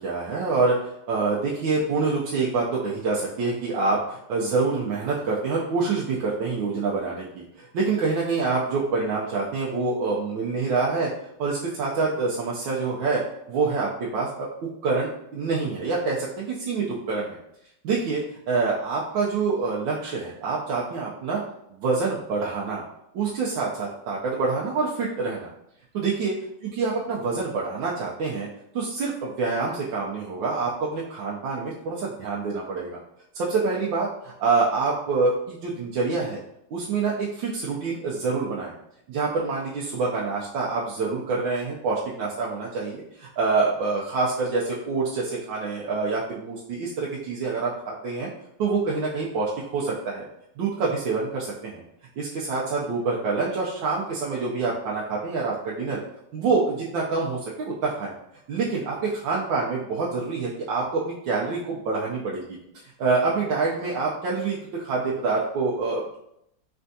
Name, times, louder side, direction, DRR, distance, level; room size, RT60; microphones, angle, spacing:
voice 1, 0.0-11.1 11.4-13.2 13.5-14.5 14.8-17.4 17.8-21.4 21.7-22.8 23.1-25.5 25.9-26.4 26.8-28.5 28.7-33.0 33.3-36.4 36.7-38.7 39.1-48.3 48.6-50.3 50.6-51.8 52.2-56.0 56.3-58.1 58.5-62.6 63.0-66.2, right 4 dB, 85° right, -5 dB, 1.4 m, -26 dB
4.4 x 3.4 x 2.6 m, 0.77 s
omnidirectional pair, 2.0 m